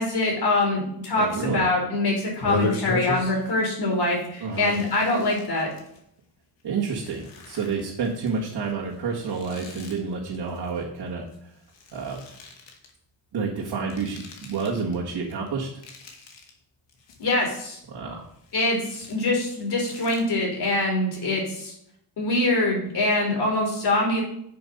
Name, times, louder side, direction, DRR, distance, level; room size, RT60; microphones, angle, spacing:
voice 1, 0.0-5.7 17.2-17.8 18.5-21.7 22.2-24.2, left 2 dB, 60° left, 0 dB, 4.0 m, -24 dB
voice 2, 1.1-1.7 4.4-4.8 6.6-11.3 11.9-12.2 13.3-15.7 17.9-18.2, right 5 dB, 60° right, -6 dB, 1.9 m, -29 dB
sound 1, 2.3-3.6 3.9-4.1 4.5-6.0 6.6-11.4 11.6-12.9 13.7-15.0 15.3-16.5 16.9-17.6 18.0-20.2, left 3 dB, 80° left, 2.2 m, -36 dB
8.0 x 6.8 x 5.3 m, 0.73 s
cardioid pair, 120°, 43 cm